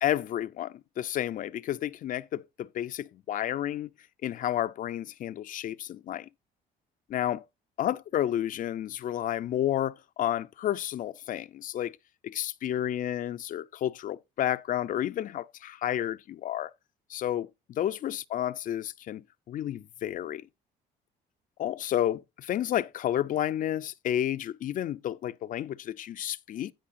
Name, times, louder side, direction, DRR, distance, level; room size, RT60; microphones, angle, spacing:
voice 1, 0.0-3.9 4.2-6.3 7.1-7.4 7.8-12.0 12.2-16.7 17.1-17.5 17.8-20.4 21.6-26.7, left 11 dB, 55° left, 0.5 m, -31 dB
16.0 x 5.5 x 2.6 m
cardioid pair, 110°, 17 cm